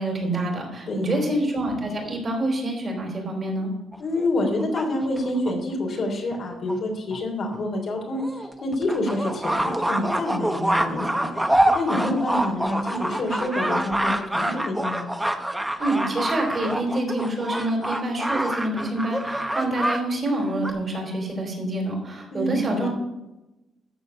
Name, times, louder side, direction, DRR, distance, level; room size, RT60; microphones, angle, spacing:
voice 1, 0.0-3.7 15.8-22.9, right 1 dB, 30° right, 0 dB, 4.1 m, -27 dB
voice 2, 0.9-1.2 4.0-11.3 11.7-15.1 22.3-22.9, left 1 dB, 50° left, 0 dB, 3.3 m, -27 dB
sound 1, 3.9-5.5 6.3-6.4 6.7-6.8 7.1-7.2 7.5-7.6 8.2-20.0 20.3-20.7, right 1 dB, 5° right, 0.8 m, -26 dB
14.0 x 4.8 x 6.6 m, 0.98 s
cardioid pair, 120°, 0 cm